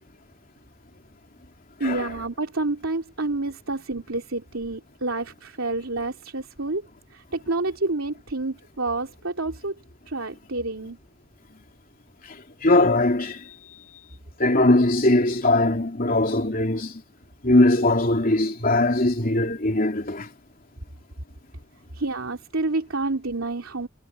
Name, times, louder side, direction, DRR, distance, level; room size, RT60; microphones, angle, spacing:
voice 1, 1.8-6.8 7.1-9.7 10.1-11.0 21.9-23.9, right 2 dB, 90° right, 2.9 m, -28 dB
voice 2, 12.3-13.5 14.4-17.0 17.4-20.3, left 2 dB, 45° left, 3.0 m, -21 dB
head